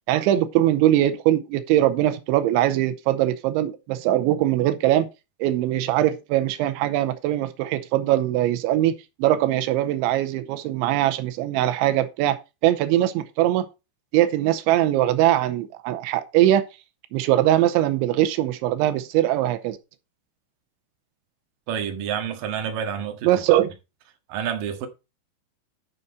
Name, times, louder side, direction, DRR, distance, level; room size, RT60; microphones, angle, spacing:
voice 1, 0.1-5.1 5.4-13.7 14.1-16.6 17.1-19.8 23.2-23.7, right 13 dB, 90° right, 3.1 m, -21 dB
voice 2, 21.7-23.3 24.3-24.9, right 8 dB, 60° right, 2.8 m, -28 dB
11.0 x 6.7 x 4.1 m
omnidirectional pair, 5.3 m